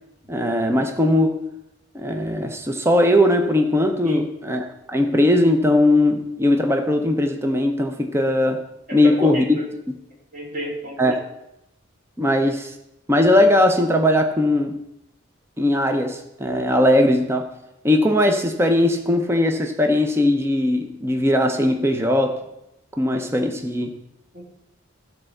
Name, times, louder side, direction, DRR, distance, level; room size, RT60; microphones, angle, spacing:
voice 1, 0.3-1.4 1.9-8.6 8.9-9.6 9.9-10.0 11.0-11.2 12.2-12.7 13.1-14.8 15.6-17.5 17.8-22.4 23.0-24.0, left 1 dB, 10° right, 5 dB, 0.6 m, -19 dB
voice 2, 8.9-9.6 10.3-11.0 24.3-24.5, equal, 40° right, -3 dB, 2.7 m, -30 dB
13.0 x 4.4 x 6.5 m, 0.87 s
head